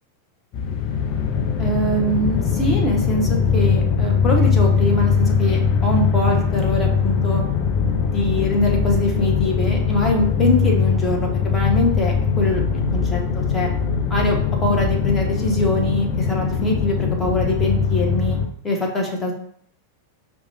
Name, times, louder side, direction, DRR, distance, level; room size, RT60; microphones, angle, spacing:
sound 1, 0.5-18.5, left 6 dB, 40° left, 0.6 m, -21 dB
voice 1, 1.6-7.4 8.0-12.6 12.9-13.7 14.1-18.4 18.6-19.3, left 1 dB, 15° left, 0 dB, 1.1 m, -23 dB
4.7 x 2.4 x 4.1 m, 0.63 s
figure-of-eight pair, 90°, 0 cm